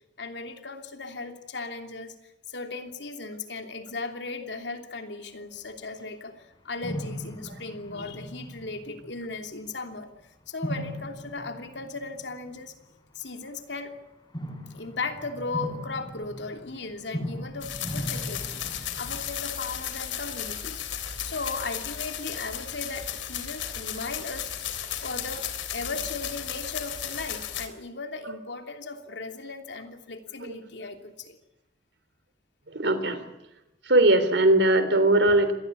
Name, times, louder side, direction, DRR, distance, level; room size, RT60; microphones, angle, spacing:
voice 1, 0.2-12.8 13.1-13.9 14.7-20.8 21.2-31.4, left 3 dB, 70° left, 6 dB, 3.0 m, -37 dB
sound 1, 6.0-6.1 6.8-9.6 10.6-12.7 14.3-19.3, equal, 25° left, 3.7 m, -38 dB
sound 2, 17.6-27.7, left 9 dB, 90° left, 3.4 m, -34 dB
voice 2, 32.7-33.2 33.8-35.5, right 1 dB, 70° right, 11 dB, 3.4 m, -20 dB
26.0 x 19.5 x 8.6 m, 0.87 s
head